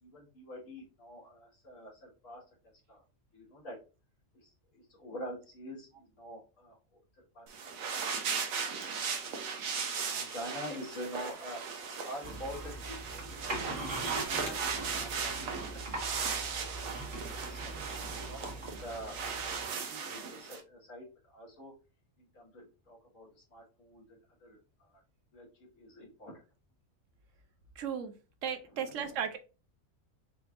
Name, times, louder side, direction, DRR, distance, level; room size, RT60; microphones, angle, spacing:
voice 1, 0.0-2.4 2.9-3.0 3.3-3.8 4.3-6.8 7.1-8.9 9.3-11.6 11.9-15.7 16.7-16.9 17.4-21.7 22.3-25.0 25.3-25.5 25.7-26.4 28.7-29.2, equal, 75° left, -3 dB, 2.0 m, -47 dB
sound 1, 7.5-20.6, right 5 dB, 90° right, 1.2 m, -37 dB
sound 2, 12.2-19.7, right 2 dB, 40° right, 1.8 m, -42 dB
voice 2, 27.8-28.1 28.4-29.4, right 7 dB, 70° right, 8 dB, 1.0 m, -35 dB
4.9 x 3.3 x 2.5 m, 0.32 s
omnidirectional pair, 1.4 m